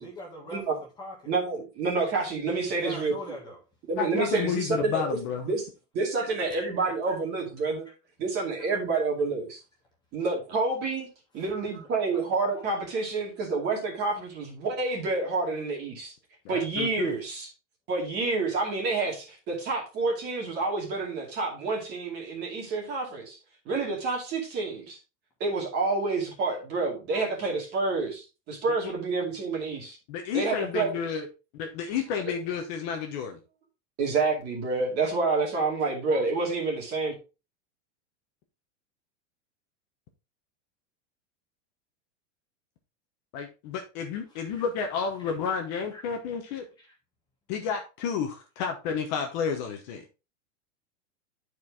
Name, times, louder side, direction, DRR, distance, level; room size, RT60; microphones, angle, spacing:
voice 1, 0.0-1.3 2.7-3.6 6.2-6.7 7.0-7.1 7.8-7.9 8.9-9.0 11.7-11.8 12.1-12.7 13.7-13.8 44.3-44.6 45.9-46.0 46.8-46.9, left 1 dB, 10° left, 1.5 m, -43 dB
voice 2, 1.3-3.1 3.9-5.0 5.4-5.7 5.9-7.9 8.2-9.6 10.1-11.1 11.3-16.1 16.5-17.5 17.9-23.4 23.7-25.0 25.4-30.0 30.3-30.9 34.0-37.1, right 3 dB, 25° right, 2.4 m, -28 dB
voice 3, 4.0-5.5 16.4-17.1 28.8-28.9 30.1-31.3 31.5-33.4 43.3-46.7 47.5-50.0, left 6 dB, 35° left, 1.0 m, -31 dB
10.5 x 4.7 x 3.5 m
supercardioid pair, 175°, 37 cm